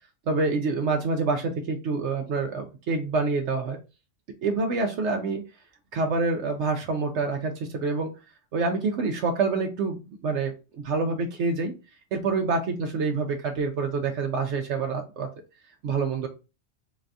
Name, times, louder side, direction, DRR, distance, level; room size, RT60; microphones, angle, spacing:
voice 1, 0.3-3.8 4.4-5.4 5.9-8.1 8.5-10.5 10.8-11.7 12.1-15.3 15.8-16.3, right 4 dB, 70° right, 4 dB, 0.9 m, -27 dB
4.0 x 2.6 x 3.3 m, 0.30 s
omnidirectional pair, 1.3 m